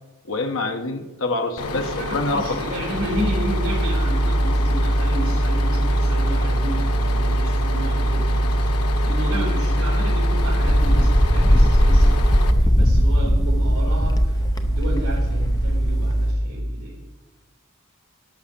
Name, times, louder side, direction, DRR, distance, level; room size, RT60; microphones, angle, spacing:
voice 1, 0.2-2.7, left 2 dB, 60° left, 5 dB, 1.1 m, -26 dB
Bus, 1.6-12.5, left 2 dB, 85° left, 0.9 m, -30 dB
voice 2, 1.7-14.3 14.6-17.0, right 1 dB, 70° right, -6 dB, 3.8 m, -32 dB
sound 1, 3.0-16.3, right 1 dB, 20° right, 4.4 m, -22 dB
Wind, 10.4-16.3, left 1 dB, 15° left, 0.6 m, -20 dB
11.5 x 6.4 x 6.6 m, 1.1 s
head